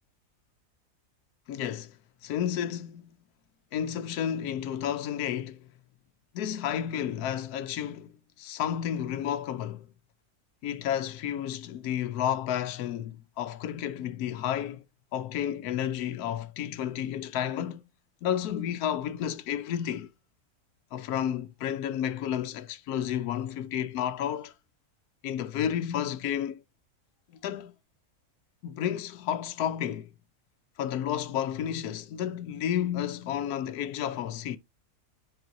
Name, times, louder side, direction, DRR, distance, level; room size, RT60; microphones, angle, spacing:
voice 1, 1.5-1.9 2.2-3.1 3.7-5.6 6.3-9.9 10.6-14.8 15.1-17.8 18.2-20.1 20.9-24.5 25.2-26.6 27.4-27.7 28.6-30.1 30.8-34.6, left 10 dB, 85° left, 1.2 m, -31 dB
8.9 x 5.5 x 2.6 m
omnidirectional pair, 1.6 m